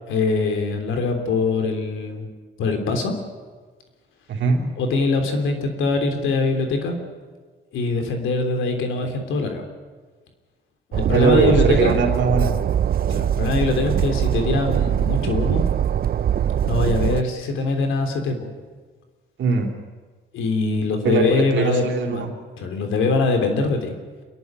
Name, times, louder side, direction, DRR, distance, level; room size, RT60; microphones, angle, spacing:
voice 1, 0.1-2.3 2.6-3.2 4.8-7.0 7.7-9.7 10.9-12.0 13.1-15.6 16.6-18.5 20.3-22.2 22.6-24.0, left 3 dB, 80° left, 5 dB, 3.3 m, -23 dB
voice 2, 4.3-4.6 11.1-12.6 19.4-19.7 21.0-22.3, right 5 dB, 70° right, 2 dB, 3.4 m, -21 dB
Train, 10.9-17.2, right 9 dB, 50° right, 0.6 m, -22 dB
27.0 x 11.5 x 9.5 m, 1.4 s
cardioid pair, 90°, 20 cm